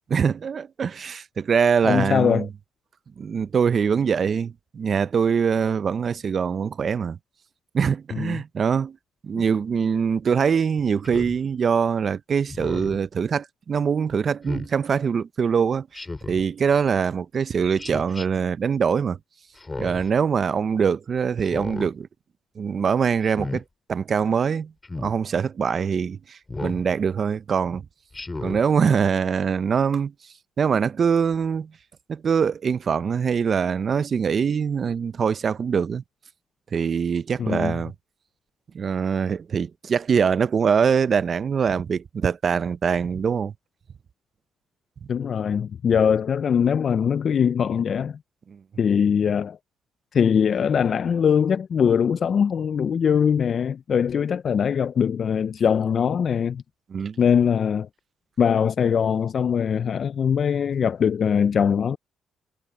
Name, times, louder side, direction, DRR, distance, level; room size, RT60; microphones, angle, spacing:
voice 1, 0.1-2.5 3.2-7.2 7.7-9.0 9.2-19.2 19.8-22.1 22.6-23.6 23.9-24.7 25.0-27.8 28.4-30.1 30.6-31.7 32.1-36.0 36.7-37.9 38.7-43.5 48.5-48.6 56.9-57.2, right 6 dB, 45° right, 0.5 m, -23 dB
voice 2, 1.8-2.5 8.1-8.4 37.4-37.8 45.1-48.2 48.8-49.6 50.1-56.6 57.2-57.9 58.4-62.0, left 7 dB, 55° left, 0.4 m, -22 dB
Speech synthesizer, 11.0-11.4 12.5-13.0 14.4-14.7 15.9-16.4 17.8-18.3 19.6-20.1 21.4-21.9 23.2-23.6 24.8-25.1 26.5-26.8 28.1-28.6, left 3 dB, 20° left, 2.4 m, -33 dB
cardioid pair, 90°, 0 cm